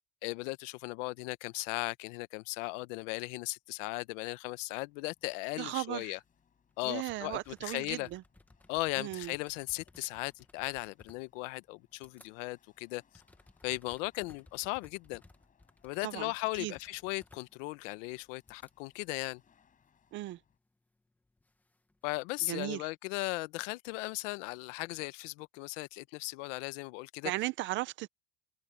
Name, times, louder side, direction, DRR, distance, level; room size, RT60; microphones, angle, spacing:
voice 1, 0.2-6.2 6.8-8.1 8.7-13.0 13.6-15.2 15.8-19.4 22.0-27.3, left 23 dB, 75° left, 0.9 m, -37 dB
Chatter / Hiss / Rattle, 3.8-20.6, left 7 dB, 20° left, 6.1 m, -73 dB
voice 2, 5.6-6.2 6.8-8.2 9.0-9.3 16.0-16.3 16.6-16.7 20.1-20.4 22.4-22.9 27.2-28.1, right 17 dB, 30° right, 0.5 m, -36 dB
sound 1, 6.7-6.8 7.0-12.3 12.7-18.7 19.3-19.8 21.0-22.5, left 2 dB, 5° left, 1.0 m, -61 dB
cardioid pair, 175°, 37 cm